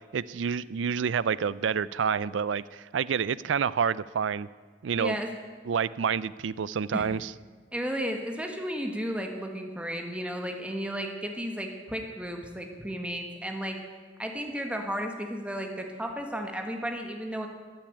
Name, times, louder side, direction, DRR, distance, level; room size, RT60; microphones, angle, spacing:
voice 1, 0.1-4.5 4.8-5.2 5.7-7.3, right 6 dB, 75° right, 19 dB, 0.4 m, -28 dB
voice 2, 5.0-5.3 6.9-7.1 7.7-13.8 14.2-17.5, equal, 5° right, 3 dB, 1.5 m, -33 dB
13.5 x 8.9 x 9.0 m, 1.5 s
head